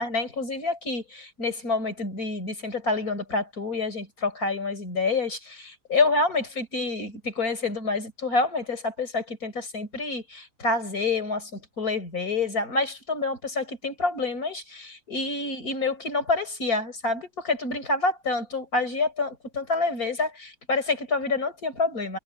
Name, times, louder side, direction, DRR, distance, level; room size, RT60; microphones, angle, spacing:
voice 1, 0.0-22.2, left 3 dB, 55° left, 5.4 m, -28 dB
omnidirectional pair, 1.8 m